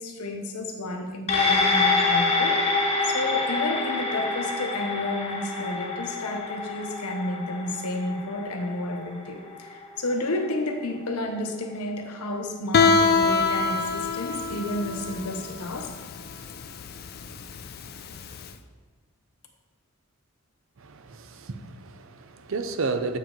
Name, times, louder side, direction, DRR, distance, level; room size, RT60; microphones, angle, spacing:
voice 1, 0.0-15.9, left 1 dB, 85° left, 0.9 m, -31 dB
sound 1, 1.3-10.0 10.4-10.5, left 3 dB, 30° left, 0.8 m, -26 dB
Guitar, 12.7-18.4, left 4 dB, 45° left, 0.3 m, -24 dB
voice 2, 20.8-23.2, right 4 dB, 60° right, 0.5 m, -32 dB
7.6 x 5.0 x 3.8 m
head